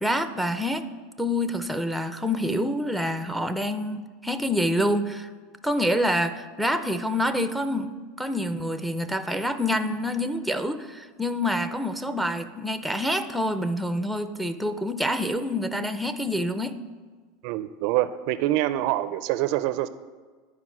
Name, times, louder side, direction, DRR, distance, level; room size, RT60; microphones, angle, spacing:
voice 1, 0.0-0.9 1.2-5.3 5.6-16.8, equal, ahead, 9 dB, 0.5 m, -27 dB
voice 2, 17.4-19.9, right 15 dB, 60° right, 14 dB, 0.4 m, -25 dB
11.5 x 4.8 x 6.0 m, 1.5 s
supercardioid pair, 140°, 0 cm